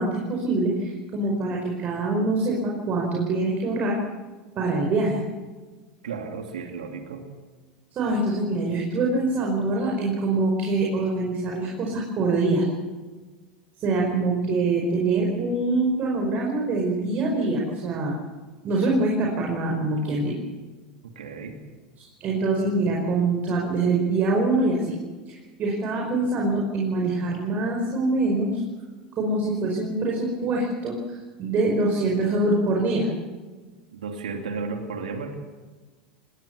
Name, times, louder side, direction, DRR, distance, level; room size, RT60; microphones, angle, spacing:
voice 1, 0.0-4.0 4.6-5.2 7.9-12.7 13.8-18.1 18.6-20.3 22.0-24.9 25.3-28.6 29.2-33.1, right 2 dB, 40° right, -1 dB, 5.2 m, -24 dB
voice 2, 6.0-7.3 21.0-21.6 33.9-35.3, right 4 dB, 90° right, 3 dB, 2.7 m, -33 dB
20.5 x 19.5 x 7.0 m, 1.3 s
hypercardioid pair, 100°, 4 cm